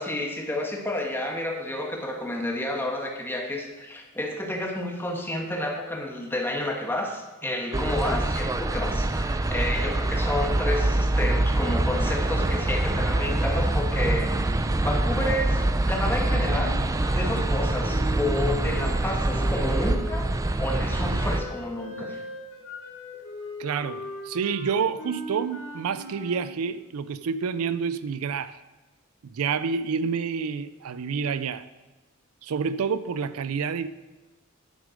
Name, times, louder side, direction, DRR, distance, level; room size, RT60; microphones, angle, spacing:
voice 1, 0.0-14.3 14.8-16.8 17.1-20.3 20.6-22.2, left 1 dB, 10° left, 1 dB, 1.5 m, -30 dB
sound 1, 7.7-21.4, right 2 dB, 15° right, 0.4 m, -25 dB
Wind instrument woodwind instrument, 16.3-20.4 21.1-26.6, equal, 75° left, 2.5 m, -39 dB
voice 2, 23.6-28.6 29.3-31.7 32.4-33.9, right 6 dB, 80° right, 14 dB, 0.4 m, -28 dB
9.7 x 7.2 x 5.1 m, 1.2 s
head